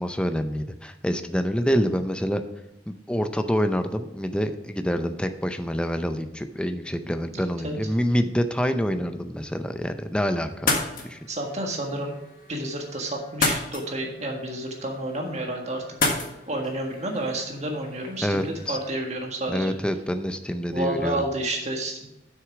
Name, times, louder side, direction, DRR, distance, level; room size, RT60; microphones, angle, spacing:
voice 1, 0.0-2.4 2.9-10.7 11.0-11.2 18.2-18.8 19.5-21.2, equal, 5° left, 8 dB, 0.5 m, -26 dB
voice 2, 7.3-7.8 11.3-12.1 12.5-16.1 16.5-19.7 20.7-22.1, right 1 dB, 40° right, 1 dB, 1.6 m, -30 dB
sound 1, 10.5-18.9, left 3 dB, 50° left, 1.5 m, -32 dB
8.0 x 6.3 x 4.9 m, 0.89 s
head